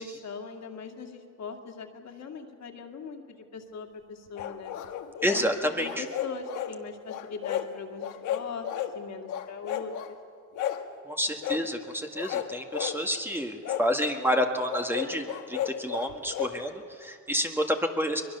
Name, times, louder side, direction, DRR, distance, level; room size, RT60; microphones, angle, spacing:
voice 1, 0.0-4.7 5.3-5.5 5.8-10.2, left 5 dB, 60° left, 3 dB, 2.4 m, -40 dB
sound 1, 4.4-5.5 5.8-6.7 7.1-7.7 8.0-9.0 9.3-10.1 10.6-10.9 11.4-11.6 12.1-13.0 13.6-13.9 14.7-16.5, left 11 dB, 80° left, 1.5 m, -33 dB
voice 2, 5.2-6.0 11.0-18.2, equal, 5° right, 4 dB, 1.7 m, -29 dB
23.0 x 21.5 x 6.8 m, 2.2 s
cardioid pair, 90°, 30 cm